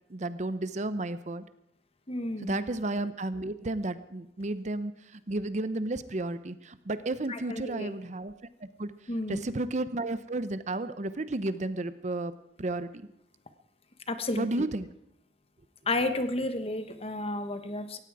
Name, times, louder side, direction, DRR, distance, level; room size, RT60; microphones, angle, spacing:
voice 1, 0.1-1.4 2.4-8.3 8.8-8.9 9.3-12.3 12.6-12.9 14.4-14.9, right 2 dB, 40° right, 13 dB, 0.7 m, -32 dB
voice 2, 2.1-2.6 7.3-7.9 9.1-9.5 14.1-14.4 15.9-18.0, left 2 dB, 35° left, 9 dB, 1.2 m, -32 dB
18.0 x 15.5 x 4.8 m, 0.78 s
head